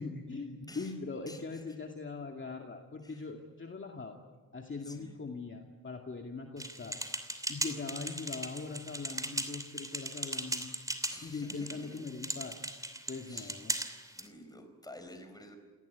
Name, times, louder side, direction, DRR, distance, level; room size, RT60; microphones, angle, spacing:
voice 1, 0.0-4.2 4.5-7.0 7.5-10.7 11.2-12.6 13.1-13.7, left 4 dB, 35° left, 3 dB, 2.3 m, -41 dB
voice 2, 1.3-1.7 3.0-3.2 4.8-5.2 11.1-12.0 13.3-13.6 14.1-15.6, left 1 dB, 10° left, 6 dB, 4.4 m, -51 dB
sound 1, 6.6-14.3, right 1 dB, 10° right, 2.9 m, -38 dB
29.0 x 18.5 x 9.4 m, 1.4 s
wide cardioid pair, 105°, 34 cm